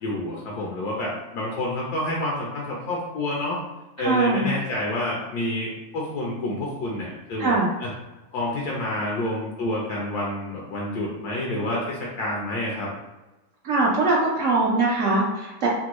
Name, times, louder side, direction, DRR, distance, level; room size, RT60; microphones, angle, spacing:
voice 1, 0.0-3.6 4.0-7.5 7.8-7.9 8.3-12.9, left 1 dB, 75° left, -3 dB, 1.2 m, -28 dB
voice 2, 4.0-4.5 7.4-7.7 13.6-15.7, right 2 dB, 65° right, -4 dB, 0.8 m, -22 dB
3.4 x 2.1 x 3.0 m, 1.1 s
omnidirectional pair, 1.7 m